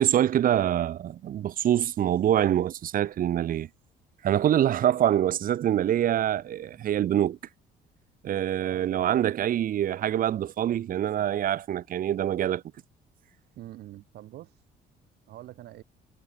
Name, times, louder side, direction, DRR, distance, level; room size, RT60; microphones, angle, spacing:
voice 1, 0.0-3.7 4.2-7.4 8.2-12.6, right 11 dB, 55° right, 1.3 m, -25 dB
voice 2, 8.6-9.2 13.6-14.6 15.3-15.8, right 14 dB, 70° right, 6.9 m, -44 dB
cardioid pair, 110°, 17 cm